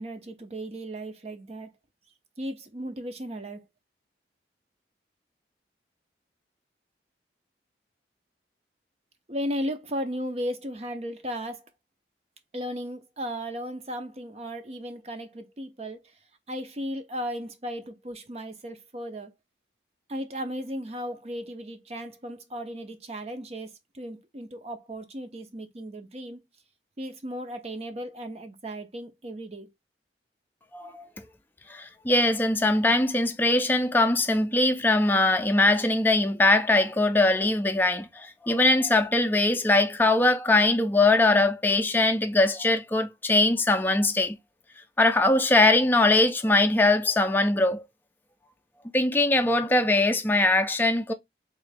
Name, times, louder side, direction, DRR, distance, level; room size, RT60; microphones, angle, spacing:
voice 1, 0.0-1.7 2.4-3.7 9.3-11.7 12.5-16.0 16.5-19.3 20.1-26.4 27.0-29.7, equal, 35° right, 0.6 m, -35 dB
voice 2, 30.7-31.0 31.7-44.4 45.0-47.9 48.9-51.1, left 2 dB, 10° left, 0.4 m, -22 dB
3.7 x 3.1 x 3.2 m
head